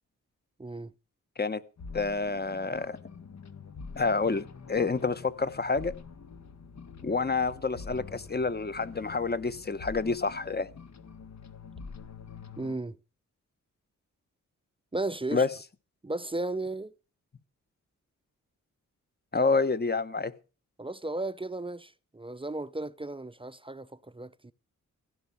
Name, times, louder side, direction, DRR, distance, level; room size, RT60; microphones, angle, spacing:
voice 1, 0.6-0.9 12.6-13.0 14.9-15.5 16.0-16.9 20.8-24.5, right 2 dB, 15° right, 0.7 m, -35 dB
sound 1, 1.8-12.8, left 5 dB, 55° left, 1.6 m, -46 dB
voice 2, 1.9-3.0 4.0-6.0 7.0-10.7 15.3-15.5 19.3-20.3, left 4 dB, 30° left, 1.2 m, -28 dB
16.0 x 5.9 x 9.7 m
cardioid pair, 70°, 32 cm